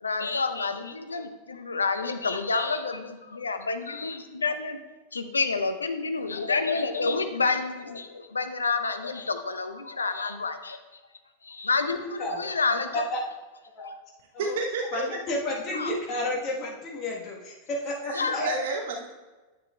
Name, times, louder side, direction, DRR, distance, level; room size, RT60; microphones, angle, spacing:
voice 1, 0.0-4.8 5.1-10.8 11.4-13.0 15.7-15.9 18.1-18.4, left 4 dB, 75° left, 8 dB, 0.6 m, -29 dB
voice 2, 12.0-12.4 12.9-13.2 13.7-13.9 14.3-14.6 14.9-18.5, left 1 dB, 30° left, -2 dB, 1.3 m, -31 dB
voice 3, 14.4-15.2 18.1-19.1, right 3 dB, 55° right, 2 dB, 0.9 m, -31 dB
9.7 x 8.5 x 2.3 m, 1.2 s
figure-of-eight pair, 90°, 0 cm